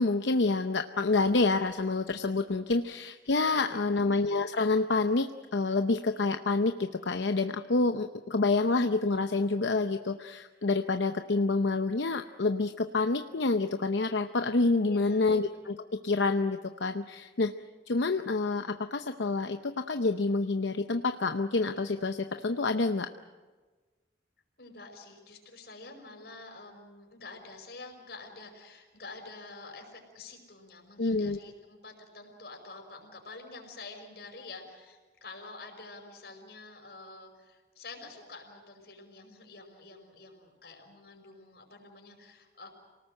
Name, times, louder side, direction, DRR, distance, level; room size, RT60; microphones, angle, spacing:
voice 1, 0.0-15.8 16.0-17.5 17.9-23.1 31.0-31.4, left 3 dB, 85° left, 7 dB, 0.8 m, -28 dB
voice 2, 3.6-4.1 8.6-8.8 14.8-15.3 24.6-42.7, left 3 dB, 65° left, 3 dB, 5.6 m, -48 dB
27.5 x 19.0 x 7.8 m, 1.3 s
head